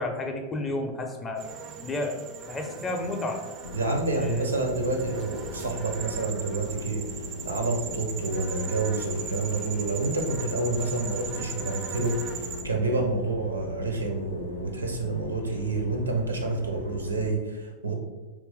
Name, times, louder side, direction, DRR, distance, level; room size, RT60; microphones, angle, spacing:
voice 1, 0.0-1.4 1.8-3.4 4.2-4.5, left 2 dB, 20° left, 3 dB, 0.5 m, -31 dB
sound 1, 1.4-12.6, right 6 dB, 35° right, 0.4 m, -38 dB
sound 2, 3.6-17.3, left 3 dB, 70° left, 0.5 m, -40 dB
voice 2, 3.7-17.9, right 2 dB, 80° right, 3 dB, 0.6 m, -29 dB
3.2 x 3.0 x 3.4 m, 1.2 s
figure-of-eight pair, 90°, 0 cm